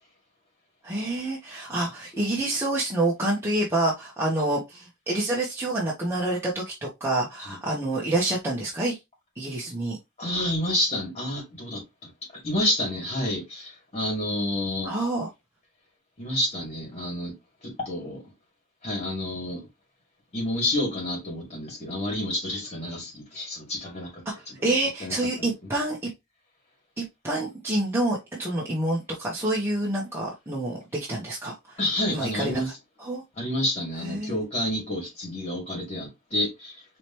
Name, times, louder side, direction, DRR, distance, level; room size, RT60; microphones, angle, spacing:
voice 1, 0.8-9.0 9.4-10.0 14.8-15.3 24.6-26.1 27.0-31.8 32.1-32.6 33.0-33.2 34.0-34.4, right 2 dB, 10° right, 1.2 m, -27 dB
voice 2, 10.2-12.1 12.4-14.9 16.2-17.3 17.6-18.2 18.8-19.6 20.3-24.1 24.5-24.6 25.0-25.5 31.8-32.7 33.4-36.7, left 1 dB, 35° left, 2.6 m, -29 dB
5.1 x 3.2 x 2.9 m
head